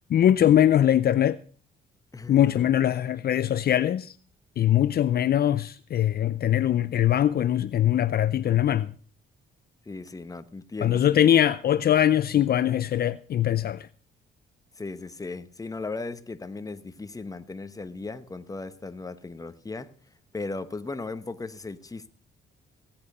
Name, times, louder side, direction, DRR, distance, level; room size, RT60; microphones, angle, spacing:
voice 1, 0.1-1.4 2.3-4.1 4.6-8.9 10.8-13.9, left 11 dB, 50° left, 0.5 m, -22 dB
voice 2, 2.1-2.7 9.9-11.0 14.8-19.9 20.3-22.1, left 3 dB, 15° left, 1.0 m, -37 dB
17.0 x 8.8 x 5.5 m
cardioid pair, 90°, 20 cm